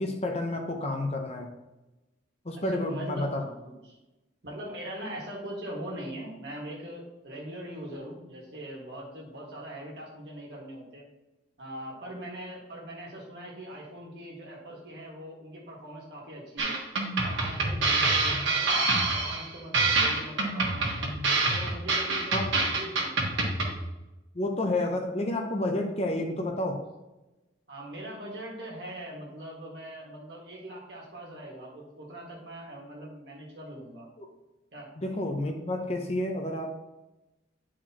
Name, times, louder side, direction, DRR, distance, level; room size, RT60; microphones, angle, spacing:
voice 1, 0.0-1.5 2.4-3.4 18.0-18.1 22.3-22.5 24.3-26.8 35.0-36.8, left 1 dB, 35° left, 3 dB, 0.7 m, -30 dB
voice 2, 2.6-4.0 4.4-11.0 11.6-16.8 17.2-18.8 19.1-21.1 21.5-23.5 27.7-34.1 34.7-34.9, right 1 dB, 60° right, -2 dB, 1.8 m, -41 dB
sound 1, 16.6-23.8, right 3 dB, 75° right, 1.5 m, -26 dB
9.2 x 4.8 x 2.9 m, 1.0 s
head